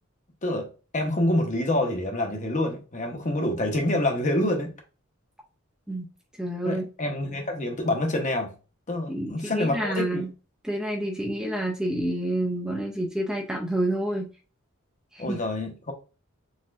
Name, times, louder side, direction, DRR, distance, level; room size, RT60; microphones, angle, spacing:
voice 1, 0.9-4.7 6.6-8.5 8.9-10.2 15.2-15.9, left 1 dB, 35° left, 0.9 m, -27 dB
voice 2, 6.4-6.8 9.1-10.3 10.6-14.3 15.1-15.4, right 1 dB, 5° right, 0.5 m, -28 dB
4.1 x 3.8 x 2.4 m
head